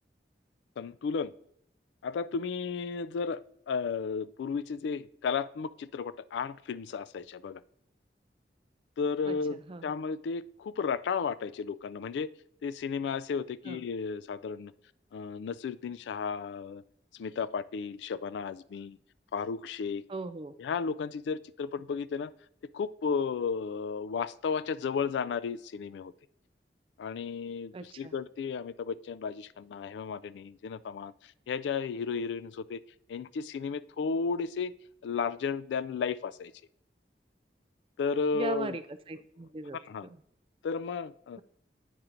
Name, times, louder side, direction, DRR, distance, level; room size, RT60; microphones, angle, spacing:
voice 1, 0.8-1.3 2.0-3.4 3.7-7.6 9.0-12.3 12.6-14.7 15.1-16.8 17.1-19.0 19.3-20.0 20.6-22.3 22.7-26.1 27.0-31.1 31.5-32.8 33.1-34.7 35.0-36.5 38.0-38.8 39.9-40.1 40.6-41.4, left 5 dB, 85° left, 17 dB, 0.3 m, -33 dB
voice 2, 9.3-9.9 13.7-13.8 20.1-20.5 27.7-28.1 38.3-40.2, right 3 dB, 30° right, 11 dB, 0.3 m, -39 dB
9.1 x 4.3 x 3.8 m, 0.72 s
head